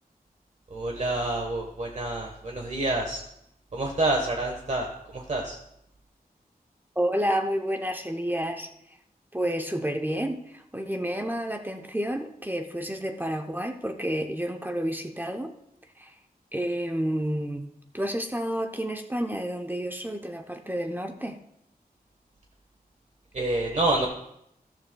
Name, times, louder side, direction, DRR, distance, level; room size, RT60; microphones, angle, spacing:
voice 1, 0.7-3.2 3.7-5.6 23.3-24.1, right 2 dB, 45° right, 1 dB, 1.2 m, -28 dB
voice 2, 7.0-8.7 9.3-15.5 16.0-16.2 16.5-21.4, equal, 10° right, 4 dB, 0.7 m, -30 dB
13.5 x 13.5 x 2.3 m, 0.78 s
wide cardioid pair, 100°, 16 cm